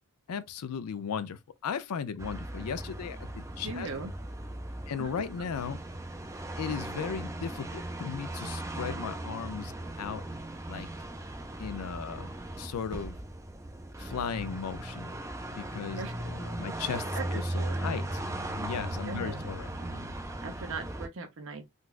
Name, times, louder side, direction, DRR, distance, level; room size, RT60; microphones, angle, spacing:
voice 1, 0.3-3.9 4.9-5.8 6.6-10.2 10.7-10.9 11.6-12.3 12.6-13.2 14.0-15.1 15.5-18.1 18.6-19.7, left 6 dB, 85° left, 0.4 m, -36 dB
sound 1, 2.2-21.1, right 1 dB, 15° right, 0.4 m, -38 dB
voice 2, 3.6-4.1 5.0-5.2 16.0-16.1 17.1-17.9 19.0-19.5 19.8-20.1 20.4-21.6, right 3 dB, 60° right, 0.7 m, -39 dB
3.8 x 2.3 x 2.4 m
head